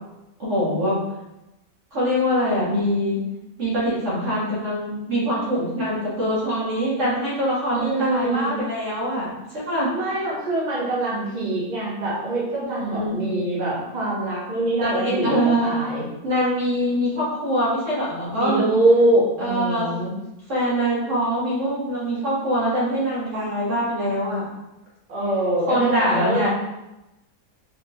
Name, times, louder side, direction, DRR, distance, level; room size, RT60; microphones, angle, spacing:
voice 1, 0.4-1.0 1.9-3.2 3.6-9.9 12.6-13.2 14.8-15.7 16.2-18.8 19.4-19.9 20.5-24.4 25.7-26.5, equal, 60° right, -7 dB, 1.6 m, -23 dB
voice 2, 7.7-8.5 9.9-16.1 18.4-20.1 25.1-26.5, right 1 dB, 35° right, -7 dB, 1.0 m, -23 dB
4.4 x 2.9 x 2.6 m, 0.95 s
omnidirectional pair, 1.5 m